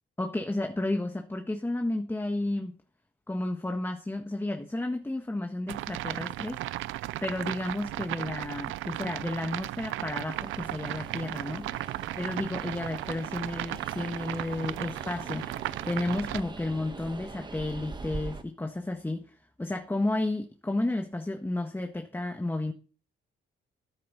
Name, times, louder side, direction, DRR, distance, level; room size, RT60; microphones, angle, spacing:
voice 1, 0.2-2.7 3.3-6.6 7.2-11.7 12.2-19.2 19.6-22.7, left 2 dB, 10° left, 1.6 m, -32 dB
sound 1, 5.7-16.4, right 16 dB, 85° right, 0.5 m, -36 dB
Train, 10.3-18.4, right 3 dB, 20° right, 1.4 m, -43 dB
13.0 x 10.5 x 4.2 m
cardioid pair, 90°, 20 cm